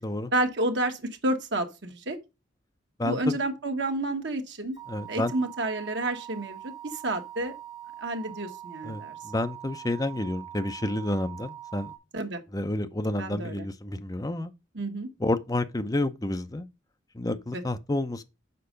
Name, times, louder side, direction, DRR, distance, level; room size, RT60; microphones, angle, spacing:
voice 1, 0.3-2.2 3.0-4.8 5.1-7.5 8.0-9.1 12.1-12.4 13.2-13.7 14.7-15.1 17.5-17.6, right 1 dB, 70° right, 1.4 m, -30 dB
voice 2, 3.0-3.4 4.9-5.3 8.8-11.9 12.5-14.5 15.2-16.7 17.1-18.2, left 1 dB, 20° left, 0.6 m, -30 dB
sound 1, 4.7-12.0, right 12 dB, 25° right, 3.7 m, -43 dB
6.8 x 4.8 x 5.2 m
head